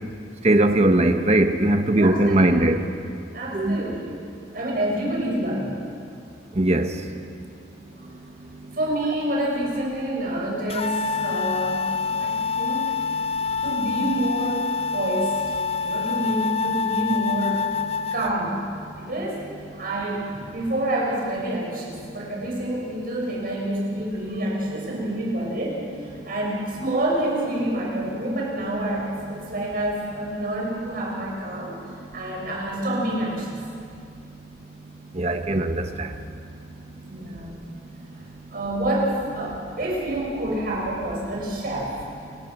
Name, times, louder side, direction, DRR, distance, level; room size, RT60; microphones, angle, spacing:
voice 1, 0.4-2.8 3.5-3.9 6.6-6.9 35.1-36.1, right 1 dB, 35° right, 7 dB, 1.2 m, -20 dB
voice 2, 2.0-2.6 3.3-4.2 4.5-5.7 8.0-8.1 8.7-11.9 12.2-13.0 13.6-15.4 15.8-17.6 18.1-18.6 18.9-19.4 19.7-31.8 32.1-33.6 37.1-37.5 38.5-42.0, right 1 dB, 50° right, -3 dB, 7.5 m, -27 dB
sound 1, 10.7-18.3, left 5 dB, 30° left, 0.6 m, -26 dB
29.0 x 18.5 x 6.1 m, 2.5 s
head